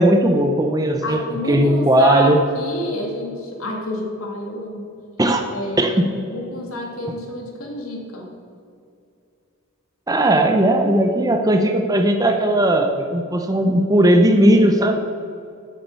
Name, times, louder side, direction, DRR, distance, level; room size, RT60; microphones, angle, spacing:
voice 1, 0.0-1.2 1.5-2.4 5.2-5.4 5.8-6.1 10.1-15.0, right 1 dB, 15° right, 4 dB, 0.6 m, -17 dB
voice 2, 1.0-4.9 5.5-8.3, left 1 dB, 75° left, 1 dB, 2.0 m, -29 dB
8.3 x 8.0 x 6.8 m, 2.4 s
head